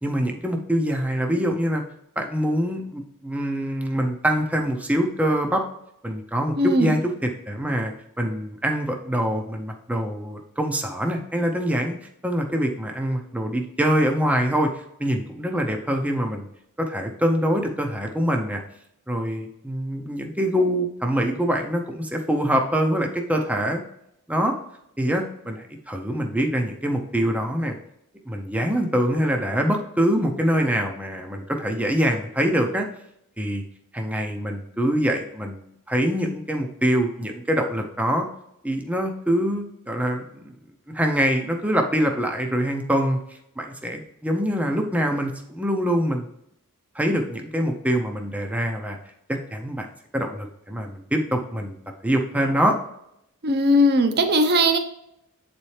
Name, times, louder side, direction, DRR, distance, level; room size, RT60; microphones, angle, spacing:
voice 1, 0.0-1.8 2.2-5.6 6.0-14.7 15.0-16.5 16.8-18.6 19.1-23.8 24.3-24.5 25.0-27.7 28.3-32.9 33.4-33.6 33.9-38.3 38.6-40.5 40.9-46.3 46.9-49.0 49.3-49.9 50.1-51.8 52.0-52.8, equal, 5° right, 3 dB, 0.6 m, -24 dB
voice 2, 6.6-7.0 53.4-54.8, equal, 50° right, 7 dB, 0.8 m, -19 dB
7.9 x 4.3 x 3.2 m, 0.78 s
head